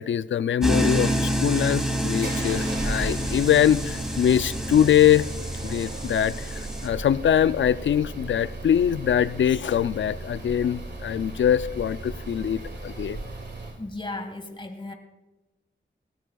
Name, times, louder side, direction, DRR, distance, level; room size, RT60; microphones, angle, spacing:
voice 1, 0.0-5.3 5.6-13.2, left 9 dB, 65° left, 17 dB, 0.4 m, -23 dB
sound 1, 0.6-6.9, equal, ahead, 3.0 m, -28 dB
sound 2, 1.9-13.8, right 2 dB, 55° right, 2.4 m, -36 dB
voice 2, 13.8-14.9, left 2 dB, 25° left, 5 dB, 1.8 m, -35 dB
19.5 x 14.5 x 2.3 m, 1.0 s
cardioid pair, 45°, 21 cm